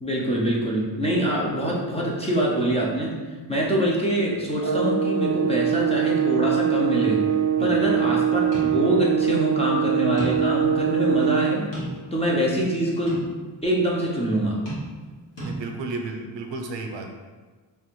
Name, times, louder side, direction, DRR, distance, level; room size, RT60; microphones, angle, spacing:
voice 1, 0.0-3.2 3.5-7.2 7.6-11.7 12.1-13.2 13.6-14.6, right 1 dB, 15° left, -4 dB, 0.6 m, -24 dB
sound 1, 4.6-11.7, right 8 dB, 40° right, 0.4 m, -23 dB
voice 2, 7.6-7.9 15.4-17.1, right 3 dB, 85° right, 3 dB, 0.6 m, -33 dB
sound 2, 8.5-8.8 9.2-9.3 10.2-10.6 11.0-11.1 11.7-12.3 13.1-13.3 14.7-15.1 15.4-15.5, right 1 dB, 80° left, 1.4 m, -34 dB
3.4 x 2.5 x 4.5 m, 1.3 s
wide cardioid pair, 155°, 43 cm